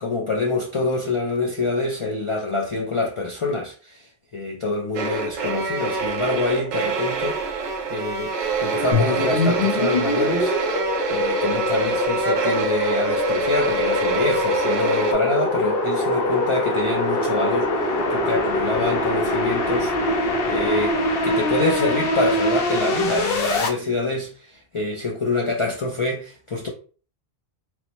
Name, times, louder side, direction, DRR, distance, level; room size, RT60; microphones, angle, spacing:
voice 1, 0.0-4.1 4.3-7.4 7.9-8.3 8.6-10.6 11.1-19.9 20.5-21.0 21.2-26.7, left 3 dB, 45° left, 0.4 m, -25 dB
sound 1, 4.9-15.1, right 5 dB, 55° right, 0.7 m, -25 dB
sound 2, 8.9-23.7, left 2 dB, 70° left, 0.8 m, -23 dB
3.1 x 2.0 x 2.9 m
omnidirectional pair, 1.1 m